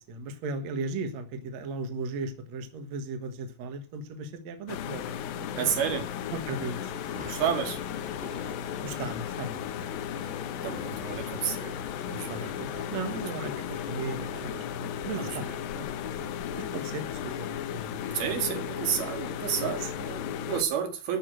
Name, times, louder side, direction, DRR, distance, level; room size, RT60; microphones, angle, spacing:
voice 1, 0.1-5.7 6.3-7.3 8.3-8.4 8.8-9.9 12.3-15.5 15.7-15.9 16.2-18.4, right 3 dB, 55° right, 2.3 m, -37 dB
sound 1, 4.7-20.6, left 9 dB, 70° left, 2.4 m, -35 dB
voice 2, 5.6-6.1 7.3-7.8 10.6-12.5 13.4-13.6 15.2-15.6 18.1-21.2, right 8 dB, 70° right, 4.0 m, -31 dB
sound 2, 6.9-14.6, equal, 5° right, 0.8 m, -49 dB
13.5 x 6.3 x 9.0 m
omnidirectional pair, 4.5 m